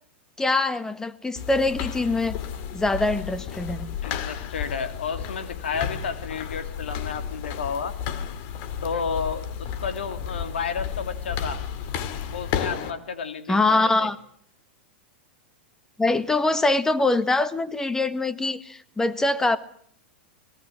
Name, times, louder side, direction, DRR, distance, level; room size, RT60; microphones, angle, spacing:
voice 1, 0.4-2.4 2.7-3.9 13.5-14.2 16.0-19.6, left 2 dB, 10° left, 12 dB, 1.6 m, -23 dB
sound 1, 1.4-12.9, left 8 dB, 50° left, 2.4 m, -32 dB
voice 2, 4.0-8.0 8.8-11.6 12.3-14.1, left 6 dB, 85° left, 8 dB, 2.6 m, -31 dB
23.0 x 20.5 x 7.7 m, 0.63 s
hypercardioid pair, 115°, 6 cm